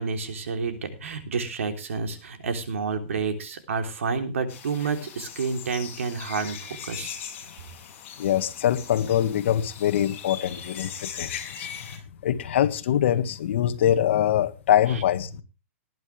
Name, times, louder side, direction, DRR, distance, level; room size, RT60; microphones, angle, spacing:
voice 1, 0.0-7.1 14.9-15.0, right 5 dB, 90° right, 3.4 m, -29 dB
sound 1, 4.5-12.0, left 8 dB, 30° left, 5.9 m, -40 dB
voice 2, 8.2-11.7 12.2-15.4, left 11 dB, 60° left, 1.7 m, -23 dB
19.0 x 11.0 x 3.3 m
hypercardioid pair, 155°, 7 cm